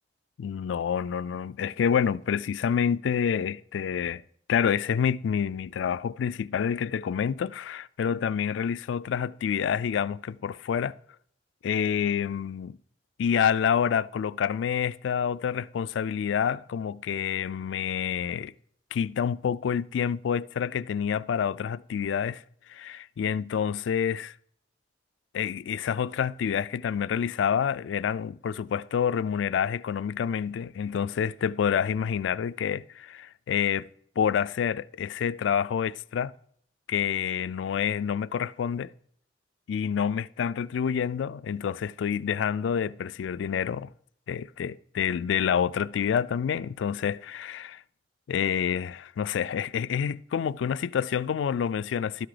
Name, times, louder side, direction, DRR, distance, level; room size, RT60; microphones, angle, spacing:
voice 1, 0.4-4.2 4.5-10.9 11.6-12.8 13.2-18.5 18.9-22.4 22.7-24.3 25.3-33.9 34.2-36.3 36.9-38.9 39.7-43.9 44.3-47.8 48.3-52.3, left 7 dB, 80° left, 0.3 m, -28 dB
12.5 x 6.0 x 5.0 m
head